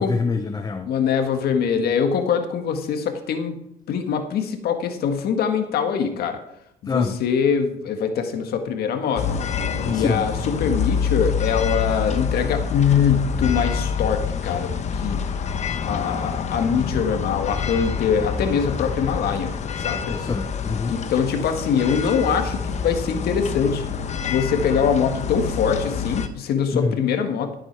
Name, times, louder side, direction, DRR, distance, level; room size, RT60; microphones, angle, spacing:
voice 1, 0.0-0.9 6.9-7.1 9.8-10.3 20.1-21.0 26.7-27.0, left 4 dB, 25° left, 8 dB, 0.8 m, -25 dB
voice 2, 0.8-3.6 3.9-6.4 6.8-9.4 9.9-15.3 15.8-20.2 20.9-23.8 24.3-27.5, left 7 dB, 70° left, 6 dB, 1.8 m, -23 dB
sound 1, 9.2-26.3, left 6 dB, 45° left, 1.1 m, -27 dB
13.5 x 8.5 x 4.7 m, 0.77 s
cardioid pair, 110°, 17 cm